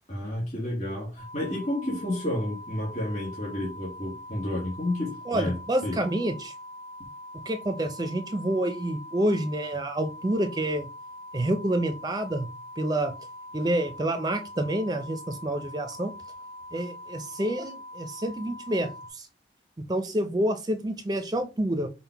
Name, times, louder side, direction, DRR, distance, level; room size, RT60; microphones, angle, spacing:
voice 1, 0.1-6.0, left 1 dB, 40° left, 1.9 m, -31 dB
sound 1, 1.2-19.1, left 1 dB, 80° left, 2.0 m, -43 dB
voice 2, 5.3-6.5 7.5-10.9 11.3-12.5 12.8-13.1 13.5-16.1 16.7-19.3 19.9-21.9, right 1 dB, 20° right, 0.4 m, -28 dB
5.5 x 2.1 x 4.5 m
head